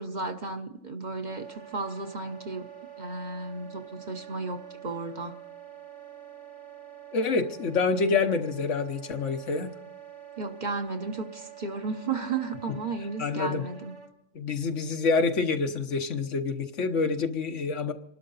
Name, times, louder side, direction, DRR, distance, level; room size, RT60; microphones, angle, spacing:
voice 1, 0.0-2.7 3.0-5.4 10.4-13.9, right 3 dB, 40° right, 6 dB, 0.9 m, -34 dB
Wind instrument woodwind instrument, 1.3-14.1, right 10 dB, 70° right, 1.7 m, -46 dB
voice 2, 7.1-9.7 13.2-13.6 14.3-17.9, left 4 dB, 75° left, 6 dB, 1.4 m, -27 dB
27.0 x 12.5 x 4.0 m, 0.80 s
omnidirectional pair, 1.3 m